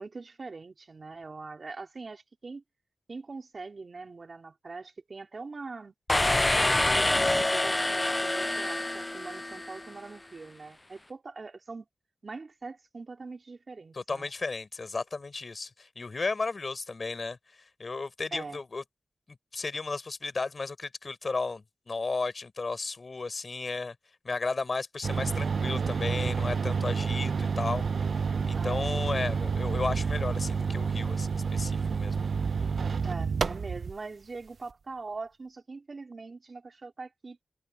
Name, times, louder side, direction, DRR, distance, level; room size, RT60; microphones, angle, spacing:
voice 1, 0.0-2.6 3.1-5.9 6.5-11.9 12.2-14.3 18.3-18.6 28.6-29.0 33.0-37.4, right 3 dB, 50° right, 3.8 m, -42 dB
sound 1, 6.1-9.9, left 1 dB, 20° left, 0.3 m, -26 dB
voice 2, 13.9-18.8 19.5-23.9 24.2-27.8 28.5-32.2, left 3 dB, 45° left, 4.4 m, -34 dB
sound 2, 25.0-34.0, right 5 dB, 65° right, 0.3 m, -29 dB
cardioid pair, 70°, 0 cm